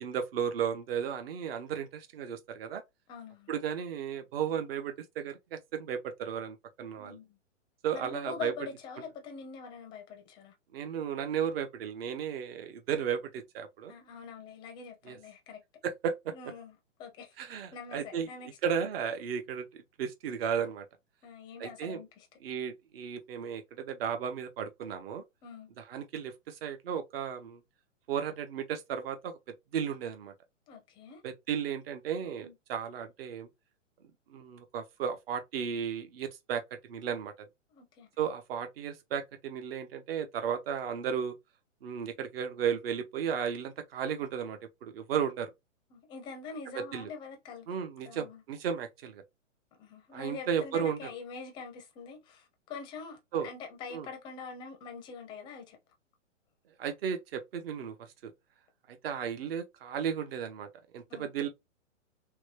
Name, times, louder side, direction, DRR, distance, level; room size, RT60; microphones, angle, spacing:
voice 1, 0.0-2.8 3.5-7.2 7.8-8.5 10.7-13.9 15.1-15.2 15.8-16.3 17.4-18.3 18.6-19.7 20.0-20.8 21.6-22.0 22.4-25.2 25.8-27.6 28.1-29.3 29.7-30.3 31.2-33.5 34.3-36.6 36.9-37.3 38.2-41.3 41.8-45.5 46.7-47.1 47.7-49.2 50.1-51.0 53.3-53.5 53.9-54.1 56.8-58.0 58.2-58.3 58.9-60.7 60.9-61.5, right 8 dB, 50° right, 0.8 m, -34 dB
voice 2, 3.1-3.5 7.0-7.4 7.9-10.5 13.9-15.6 16.3-18.5 21.2-22.3 25.4-25.7 30.7-31.2 32.4-32.5 37.7-38.1 45.9-47.7 48.0-48.4 49.8-55.8 61.1-61.3, left 5 dB, 10° left, 0.5 m, -44 dB
2.9 x 2.2 x 3.2 m
hypercardioid pair, 130°, 39 cm